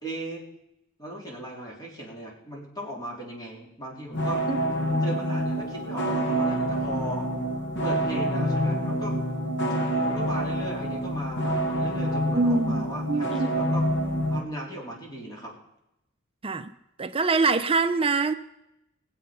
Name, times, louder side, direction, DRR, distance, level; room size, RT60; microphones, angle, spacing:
voice 1, 0.0-0.4 1.0-4.4 5.0-7.3 7.8-9.2 10.0-13.8 14.3-15.5, right 1 dB, 20° left, 3.9 m, -37 dB
sound 1, 4.1-14.4, equal, 60° left, 1.8 m, -27 dB
voice 2, 12.3-13.5 16.4-16.7 17.0-18.3, right 3 dB, 25° right, 0.6 m, -24 dB
21.0 x 7.8 x 5.5 m
head